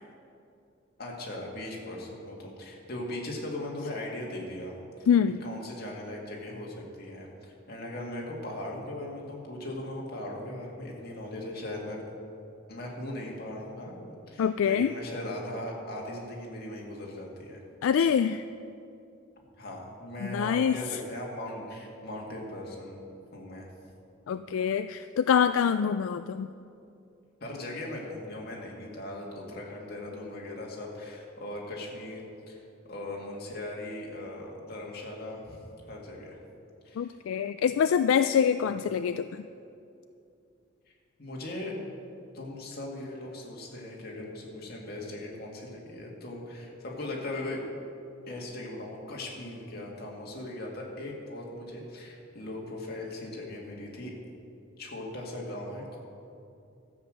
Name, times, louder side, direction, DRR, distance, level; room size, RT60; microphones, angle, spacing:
voice 1, 1.0-4.7 5.4-7.3 7.7-12.0 12.7-17.6 17.9-18.1 19.6-23.0 23.3-23.7 27.4-35.6 35.9-36.4 36.9-37.2 38.6-38.8 41.2-41.8 42.3-47.6 48.3-54.1 54.8-56.0, left 1 dB, 50° left, -2 dB, 2.1 m, -39 dB
voice 2, 5.1-5.4 14.4-14.9 17.8-18.4 20.2-20.8 24.3-26.5 37.0-39.4, left 7 dB, 75° left, 11 dB, 0.3 m, -25 dB
13.0 x 8.0 x 6.5 m, 2.6 s
head